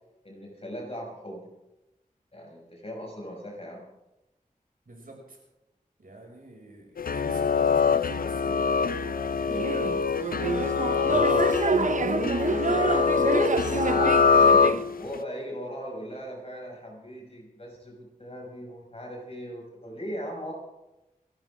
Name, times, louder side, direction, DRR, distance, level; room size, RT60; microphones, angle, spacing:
voice 1, 0.2-1.4 2.3-3.8 12.5-20.5, equal, 45° left, -1 dB, 6.0 m, -39 dB
voice 2, 4.9-5.4 6.0-10.1 10.5-11.0, right 1 dB, 80° right, -1 dB, 6.2 m, -46 dB
sound 1, 7.0-15.2, left 5 dB, 85° left, 0.5 m, -24 dB
sound 2, 9.5-14.8, right 4 dB, 60° right, 0.7 m, -28 dB
28.5 x 13.0 x 3.6 m, 0.96 s
wide cardioid pair, 70°, 15 cm